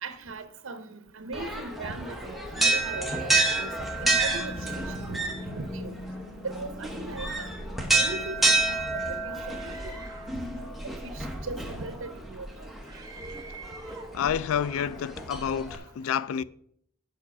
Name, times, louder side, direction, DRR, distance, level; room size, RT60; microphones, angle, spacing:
voice 1, 0.0-3.1 3.5-5.9 6.4-7.5 7.9-10.0 10.6-12.7, right 3 dB, 65° right, 0.8 m, -39 dB
sound 1, 1.3-15.8, right 2 dB, ahead, 0.9 m, -30 dB
sound 2, 3.9-9.5, left 2 dB, 50° left, 1.8 m, -43 dB
Screaming, 9.6-10.4 12.9-14.2, right 4 dB, 20° right, 1.2 m, -46 dB
voice 2, 14.1-16.4, left 8 dB, 75° left, 0.3 m, -29 dB
7.3 x 5.5 x 5.9 m
head